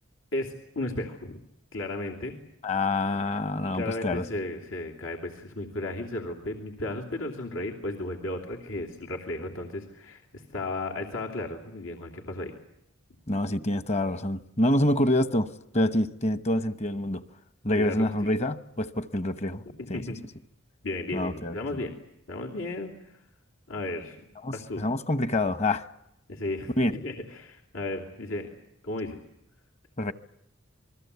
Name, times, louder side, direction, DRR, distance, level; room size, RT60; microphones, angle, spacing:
voice 1, 0.3-1.4 1.7-2.4 3.7-12.5 17.8-18.3 19.8-20.2 20.8-21.9 22.3-23.2 23.7-24.3 24.5-24.9 26.3-28.5 28.8-29.2, left 2 dB, 85° left, 3.0 m, -34 dB
voice 2, 2.6-4.2 13.3-17.2 17.6-19.6 19.9-20.0 21.1-21.6 24.4-25.9 26.8-26.9 30.0-30.1, left 1 dB, 35° left, 1.1 m, -26 dB
28.0 x 21.5 x 8.3 m
head